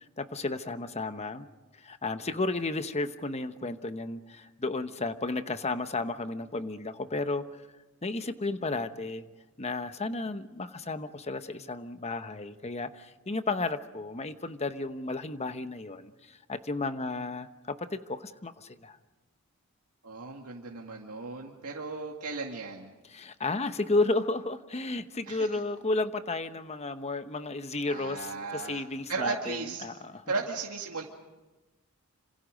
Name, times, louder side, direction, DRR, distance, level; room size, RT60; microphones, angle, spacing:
voice 1, 0.2-1.5 1.8-7.7 8.0-9.2 9.6-19.0 23.1-30.2, left 2 dB, 30° left, 10 dB, 1.0 m, -33 dB
voice 2, 20.0-22.9 25.3-25.6 27.9-29.8 30.3-31.0, right 4 dB, 85° right, -1 dB, 2.2 m, -36 dB
27.0 x 26.5 x 5.3 m, 1.1 s
head